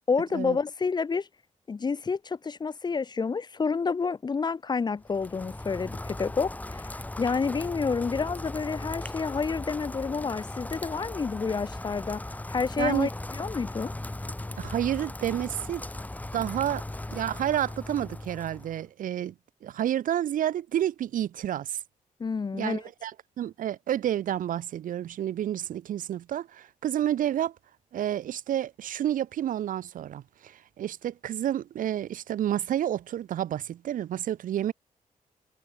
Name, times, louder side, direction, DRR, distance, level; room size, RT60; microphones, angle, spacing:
voice 1, 0.1-1.3 1.7-13.9 22.2-22.8, left 5 dB, 30° left, 1.0 m, -29 dB
Rain, 5.0-18.8, left 2 dB, 10° left, 3.0 m, -38 dB
voice 2, 12.8-13.1 14.6-15.8 16.3-16.8 17.1-19.3 19.6-21.8 22.5-27.6 27.9-34.7, right 11 dB, 85° right, 0.8 m, -30 dB
wide cardioid pair, 135°, 14 cm